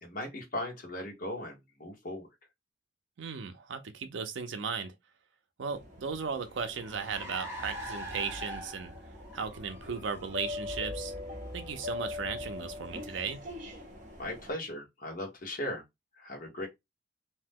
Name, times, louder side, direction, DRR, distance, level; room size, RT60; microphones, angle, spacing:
voice 1, 0.0-2.3 14.2-15.8 16.2-16.7, left 1 dB, 45° left, 1.1 m, -38 dB
voice 2, 3.2-4.9 5.6-8.9 9.3-11.1 11.5-13.4, right 6 dB, 85° right, 0.5 m, -36 dB
sound 1, 5.7-14.5, left 3 dB, 40° right, 0.7 m, -43 dB
Car, 5.8-13.5, equal, 15° right, 1.0 m, -44 dB
2.8 x 2.1 x 3.4 m
head